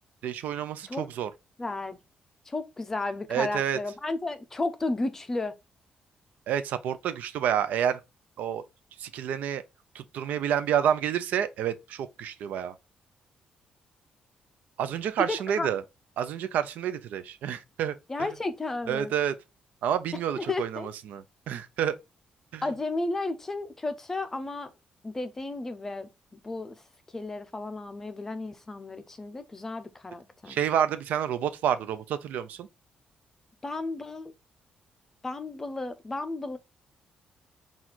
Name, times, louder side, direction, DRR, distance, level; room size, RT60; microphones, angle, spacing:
voice 1, 0.2-1.3 3.3-3.8 6.5-8.0 8.4-8.6 9.0-9.6 9.9-12.7 14.8-15.8 16.2-18.3 18.9-19.4 19.8-22.0 22.5-22.6 30.5-32.7, right 9 dB, 75° right, 0.5 m, -29 dB
voice 2, 1.6-2.0 2.5-5.5 15.2-15.7 18.1-19.1 20.4-20.9 22.6-24.7 25.0-26.1 26.4-26.8 27.1-30.6 33.6-34.3 35.2-36.6, left 2 dB, 15° left, 0.5 m, -33 dB
4.1 x 2.4 x 4.4 m
cardioid pair, 180°, 3 cm